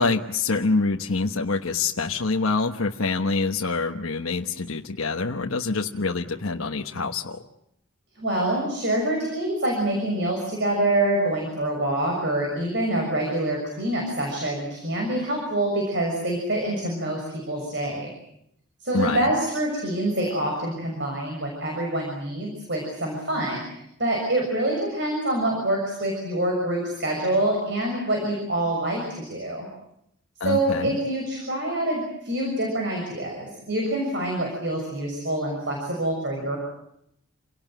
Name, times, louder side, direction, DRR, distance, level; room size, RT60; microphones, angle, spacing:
voice 1, 0.0-7.4 18.9-19.3 30.4-31.0, left 3 dB, 80° left, 3 dB, 1.2 m, -26 dB
voice 2, 8.2-18.1 18.8-29.7 30.4-36.6, right 1 dB, 55° right, 1 dB, 6.5 m, -26 dB
28.5 x 18.0 x 9.2 m, 0.78 s
head